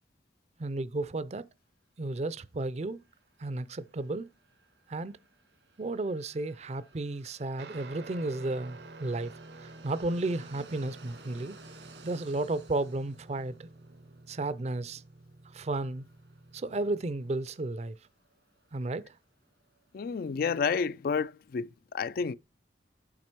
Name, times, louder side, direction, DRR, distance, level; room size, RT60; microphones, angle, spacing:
voice 1, 0.6-1.4 2.0-3.0 3.4-4.3 4.9-5.1 5.8-11.6 12.0-13.7 14.3-15.0 15.5-16.1 16.5-18.0 18.7-19.1, right 2 dB, 40° right, 0.5 m, -33 dB
sound 1, 2.9-20.5, right 3 dB, 90° right, 2.1 m, -59 dB
Guitar, 7.6-17.3, right 2 dB, 70° right, 0.7 m, -50 dB
voice 2, 19.9-22.3, left 5 dB, 55° left, 0.3 m, -30 dB
7.6 x 5.8 x 4.5 m
head